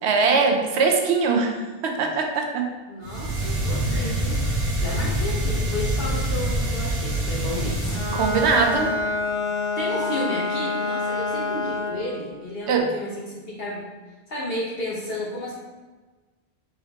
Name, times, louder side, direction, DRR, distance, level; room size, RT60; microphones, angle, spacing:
voice 1, 0.0-1.6 1.8-2.7 3.9-4.1 8.1-9.0 12.7-12.9, right 4 dB, 85° right, 3 dB, 0.9 m, -21 dB
voice 2, 2.9-4.4 4.8-8.0 9.8-13.8 14.3-15.5, left 1 dB, 65° left, -5 dB, 1.1 m, -32 dB
sound 1, 3.0-8.9, right 1 dB, 65° right, 1.5 m, -26 dB
Bowed string instrument, 7.8-12.1, left 3 dB, 5° left, 0.6 m, -27 dB
4.0 x 3.5 x 3.5 m, 1.3 s
omnidirectional pair, 1.1 m